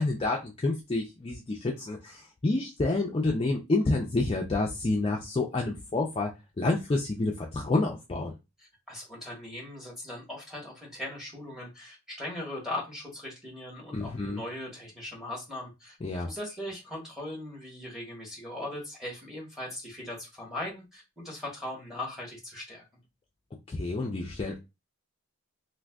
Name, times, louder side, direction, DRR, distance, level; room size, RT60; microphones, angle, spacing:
voice 1, 0.0-6.3 6.6-8.3 13.9-14.4 16.0-16.3 23.7-24.6, left 2 dB, 25° left, 0 dB, 0.3 m, -28 dB
voice 2, 8.9-16.0 16.2-22.8, left 1 dB, ahead, -3 dB, 1.0 m, -39 dB
2.5 x 2.4 x 3.4 m, 0.25 s
head